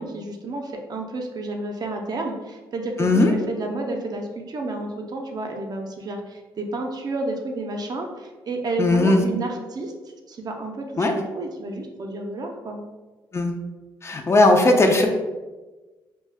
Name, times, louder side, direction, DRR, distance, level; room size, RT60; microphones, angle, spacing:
voice 1, 0.0-9.9 10.3-12.8, right 2 dB, 45° right, 2 dB, 0.5 m, -31 dB
voice 2, 3.0-3.3 8.8-9.2 11.0-11.2 13.3-13.5 14.0-15.1, left 2 dB, 30° left, 3 dB, 0.4 m, -17 dB
2.4 x 2.2 x 3.4 m, 1.2 s
supercardioid pair, 60°, 9 cm